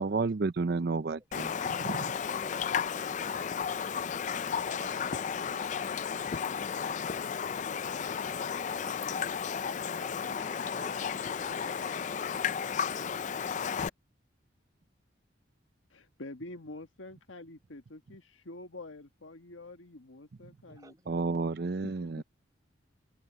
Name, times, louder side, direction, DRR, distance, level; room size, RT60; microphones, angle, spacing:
voice 1, 0.0-1.5 1.8-2.1 21.1-22.2, right 3 dB, 55° right, 0.5 m, -31 dB
voice 2, 0.6-1.2 2.2-3.4 4.8-7.0 8.2-9.0 9.5-12.9 20.7-21.2, right 1 dB, 20° right, 3.2 m, -56 dB
Raindrop, 1.3-13.9, left 7 dB, 40° left, 0.4 m, -33 dB
voice 3, 15.9-21.3 21.8-21.9 22.2-22.3, left 2 dB, 85° left, 1.5 m, -47 dB
open air
head